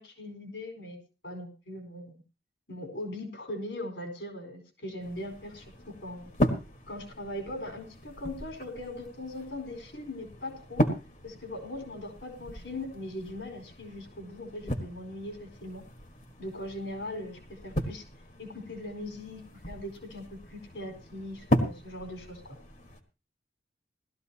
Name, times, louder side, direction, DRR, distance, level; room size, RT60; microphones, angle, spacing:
voice 1, 0.0-2.2 2.7-5.7 6.0-6.3 6.9-10.8 11.2-15.8 16.4-18.0 18.4-22.5, left 1 dB, 85° left, 3 dB, 4.5 m, -40 dB
sound 1, 5.0-23.0, equal, 45° left, 1.5 m, -36 dB
18.5 x 13.5 x 2.9 m, 0.31 s
head